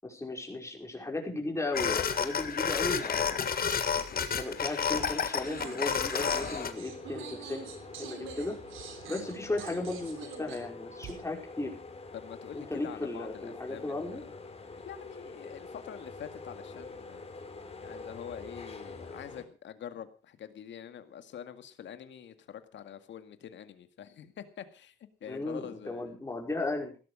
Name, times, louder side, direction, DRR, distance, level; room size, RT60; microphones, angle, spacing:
voice 1, 0.0-3.4 4.2-7.6 8.0-8.5 9.1-11.7 12.5-14.2 25.3-26.9, left 2 dB, 15° left, 1 dB, 5.2 m, -35 dB
sound 1, 1.7-6.7, left 7 dB, 50° left, 1.8 m, -30 dB
sound 2, 5.4-11.1, right 8 dB, 85° right, 3.3 m, -45 dB
sound 3, 6.1-19.4, left 3 dB, 30° left, 3.3 m, -46 dB
voice 2, 12.1-14.2 14.8-17.2 17.8-25.0 25.2-26.2, left 9 dB, 65° left, 9 dB, 2.0 m, -45 dB
16.5 x 13.0 x 5.0 m, 0.37 s
cardioid pair, 90°, 20 cm